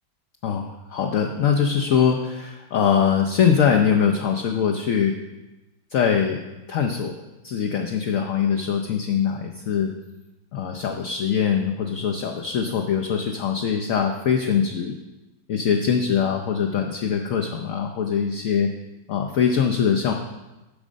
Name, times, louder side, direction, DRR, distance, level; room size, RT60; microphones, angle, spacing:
voice 1, 0.4-5.1 5.9-6.4 6.7-7.1 7.4-9.9 10.5-14.9 15.5-18.7 19.1-20.1, left 7 dB, 65° left, 3 dB, 0.8 m, -22 dB
8.5 x 6.3 x 5.1 m, 1.0 s
omnidirectional pair, 2.0 m